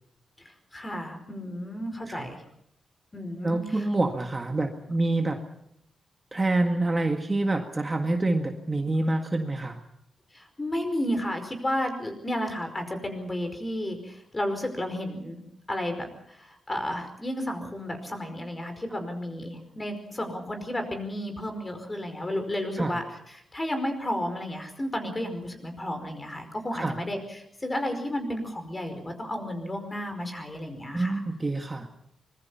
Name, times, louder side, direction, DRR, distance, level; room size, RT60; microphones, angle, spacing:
voice 1, 0.4-2.4 3.1-3.8 10.3-15.4 15.7-31.2, left 1 dB, 20° left, 7 dB, 5.1 m, -32 dB
voice 2, 3.4-5.4 6.3-9.8 22.8-23.0 26.7-27.0 30.9-31.9, right 2 dB, 20° right, 4 dB, 1.7 m, -27 dB
25.0 x 21.5 x 5.8 m, 0.74 s
wide cardioid pair, 125°, 0 cm